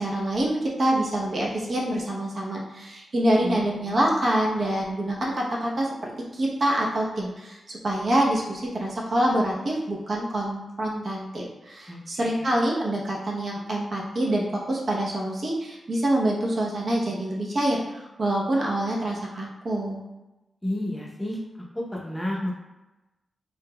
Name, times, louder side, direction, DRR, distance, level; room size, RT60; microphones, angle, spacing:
voice 1, 0.0-5.9 6.3-20.0, right 1 dB, 45° right, -3 dB, 0.8 m, -26 dB
voice 2, 3.4-4.0 11.9-12.5 20.6-21.4 21.7-22.5, left 1 dB, 10° left, -3 dB, 0.7 m, -31 dB
3.9 x 3.7 x 2.2 m, 1.0 s
wide cardioid pair, 140°, 0 cm